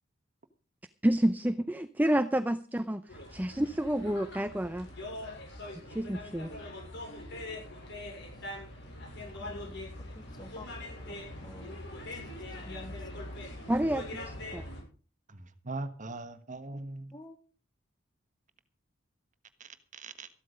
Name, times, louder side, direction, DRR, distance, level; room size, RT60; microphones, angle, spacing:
voice 1, 1.0-4.9 5.9-6.5 13.7-14.6, right 1 dB, 10° right, 11 dB, 0.6 m, -29 dB
sound 1, 3.1-14.8, left 1 dB, 60° left, 7.0 m, -42 dB
voice 2, 9.4-10.7 11.1-11.7 12.6-13.0 17.1-17.4, left 2 dB, 20° left, 9 dB, 1.5 m, -50 dB
voice 3, 15.3-17.1 19.6-20.3, right 2 dB, 40° right, 10 dB, 1.4 m, -41 dB
14.5 x 12.5 x 5.1 m, 0.38 s
head